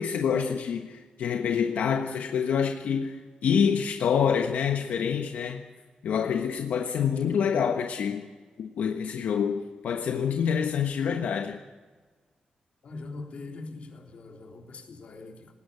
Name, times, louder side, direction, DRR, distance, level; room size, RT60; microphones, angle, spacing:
voice 1, 0.0-5.6 6.0-8.3 8.6-11.6, left 7 dB, 85° left, 1.3 m, -27 dB
voice 2, 12.8-15.5, left 3 dB, 55° left, 3.7 m, -42 dB
20.0 x 17.0 x 8.6 m
wide cardioid pair, 140°, 3 cm